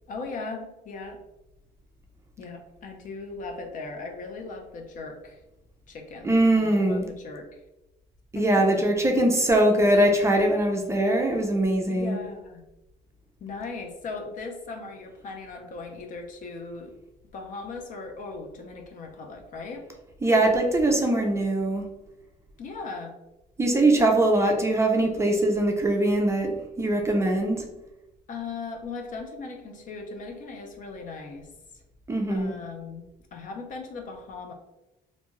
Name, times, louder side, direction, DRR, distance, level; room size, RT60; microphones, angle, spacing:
voice 1, 0.1-1.2 2.4-5.4 5.9-7.6 8.3-8.8 11.9-12.6 13.4-16.9 17.3-19.8 22.6-23.2 28.3-31.5 32.3-34.5, left 4 dB, 50° left, 3 dB, 0.6 m, -38 dB
voice 2, 6.2-7.1 8.3-12.2 20.2-21.9 23.6-27.7 32.1-32.6, right 1 dB, 15° right, 2 dB, 0.4 m, -22 dB
2.6 x 2.2 x 3.0 m, 0.96 s
cardioid pair, 110°, 17 cm